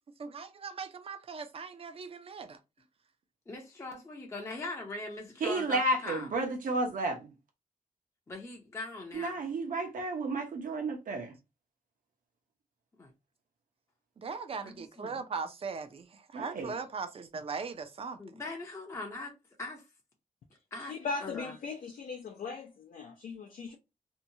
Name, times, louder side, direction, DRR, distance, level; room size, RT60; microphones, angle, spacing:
voice 1, 0.2-2.6 14.2-18.2, right 5 dB, 45° right, 0.4 m, -39 dB
voice 2, 3.5-6.3 8.3-9.4 13.0-13.1 14.6-15.1 18.2-19.3 19.6-19.8 20.7-20.9 21.2-21.5, left 2 dB, 20° left, 0.5 m, -41 dB
voice 3, 5.4-7.3 9.1-11.3 16.3-16.7, right 2 dB, 75° right, 0.8 m, -32 dB
voice 4, 20.9-23.8, left 4 dB, 70° left, 0.4 m, -39 dB
2.7 x 2.2 x 2.7 m
wide cardioid pair, 135°, 14 cm